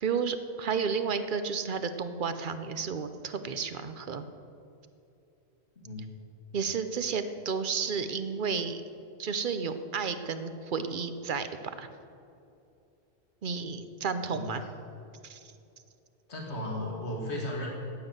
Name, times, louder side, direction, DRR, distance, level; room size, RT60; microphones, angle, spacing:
voice 1, 0.0-4.3 6.5-8.8 9.2-11.5 11.8-11.9 13.4-14.6 15.2-15.4, right 5 dB, 55° right, 10 dB, 0.8 m, -32 dB
voice 2, 14.3-14.7 16.3-17.7, left 1 dB, 85° left, -2 dB, 2.1 m, -35 dB
9.6 x 9.2 x 7.9 m, 2.7 s
omnidirectional pair, 1.1 m